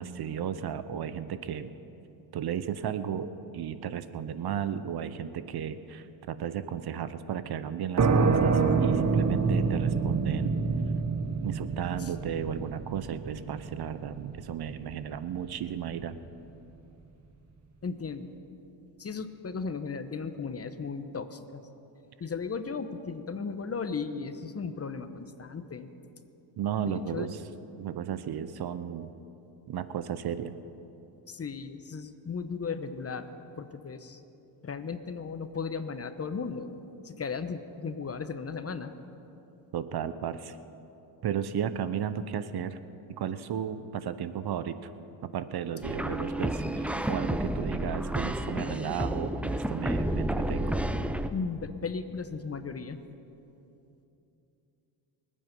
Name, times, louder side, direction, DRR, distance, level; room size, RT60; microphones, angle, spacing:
voice 1, 0.0-1.7 2.3-10.6 11.4-16.2 26.6-27.4 27.8-29.1 29.7-30.5 39.7-40.6 41.2-42.8 43.2-44.8 45.3-50.8, right 8 dB, 50° right, 13 dB, 0.9 m, -34 dB
sound 1, 8.0-15.4, right 5 dB, 35° right, 1.2 m, -27 dB
voice 2, 17.8-18.4 19.0-21.6 22.2-25.9 26.9-27.3 31.3-33.3 33.6-34.2 34.6-36.7 37.0-38.9 51.3-53.0, left 5 dB, 30° left, 10 dB, 1.0 m, -36 dB
sound 2, 45.8-51.3, right 1 dB, 5° right, 0.7 m, -30 dB
24.0 x 8.7 x 5.3 m, 2.9 s
supercardioid pair, 75°, 49 cm